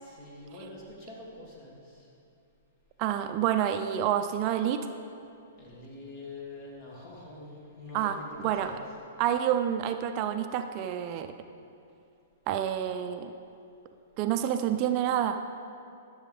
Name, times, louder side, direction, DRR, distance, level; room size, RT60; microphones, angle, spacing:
voice 1, 0.0-2.1 5.6-8.8, left 2 dB, 40° left, -3 dB, 2.4 m, -45 dB
voice 2, 3.0-4.9 7.9-8.8 9.2-11.3 12.5-13.3 14.2-15.4, right 10 dB, 40° right, 8 dB, 0.4 m, -28 dB
12.5 x 7.1 x 3.5 m, 2.6 s
hypercardioid pair, 120°, 0 cm